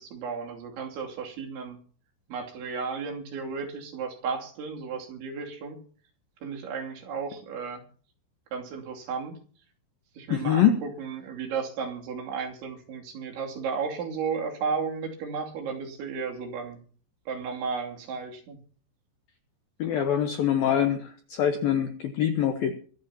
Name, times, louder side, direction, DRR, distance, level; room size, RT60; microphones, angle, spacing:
voice 1, 0.0-1.8 2.3-5.8 6.4-7.8 8.5-9.4 10.2-16.8 17.3-18.6, right 5 dB, 65° right, 1 dB, 5.0 m, -34 dB
voice 2, 10.3-10.8 19.8-22.7, left 9 dB, 85° left, 7 dB, 2.1 m, -24 dB
23.5 x 13.5 x 2.9 m, 0.43 s
omnidirectional pair, 5.9 m